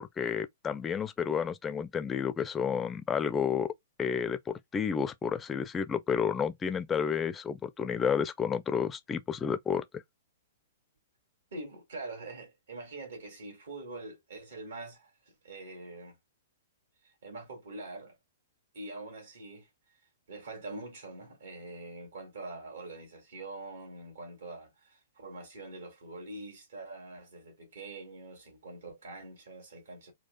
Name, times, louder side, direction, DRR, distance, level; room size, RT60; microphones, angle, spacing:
voice 1, 0.0-3.7 4.0-9.8, left 7 dB, 15° left, 0.5 m, -31 dB
voice 2, 11.5-16.2 17.0-18.2 18.7-19.7 20.3-30.1, right 2 dB, 65° right, 2.1 m, -44 dB
4.3 x 2.3 x 2.2 m
figure-of-eight pair, 115°, 0 cm